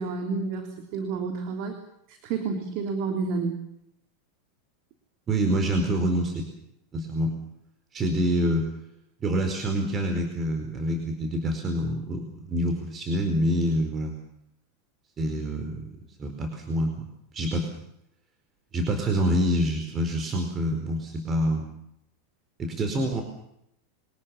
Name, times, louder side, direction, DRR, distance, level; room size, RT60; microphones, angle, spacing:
voice 1, 0.0-1.8 2.1-3.6, right 4 dB, 55° right, 5 dB, 3.3 m, -30 dB
voice 2, 5.3-6.5 6.9-7.3 7.9-8.7 9.2-14.1 15.2-15.9 16.2-16.9 17.3-17.7 18.7-21.7 22.6-23.2, equal, 30° right, 4 dB, 4.7 m, -26 dB
24.0 x 19.0 x 7.2 m, 0.76 s
hypercardioid pair, 100°, 0 cm